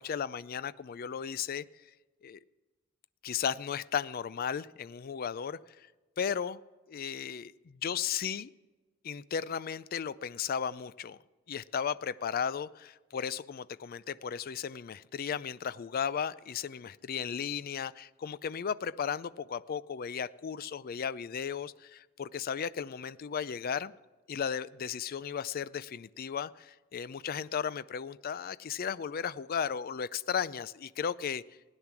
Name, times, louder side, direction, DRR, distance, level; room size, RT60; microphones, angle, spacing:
voice 1, 0.0-1.6 2.2-2.4 3.2-5.9 6.2-6.6 6.9-8.5 9.0-11.2 11.5-23.9 24.3-31.4, left 7 dB, 45° left, 18 dB, 0.4 m, -35 dB
17.0 x 10.0 x 6.0 m, 1.2 s
head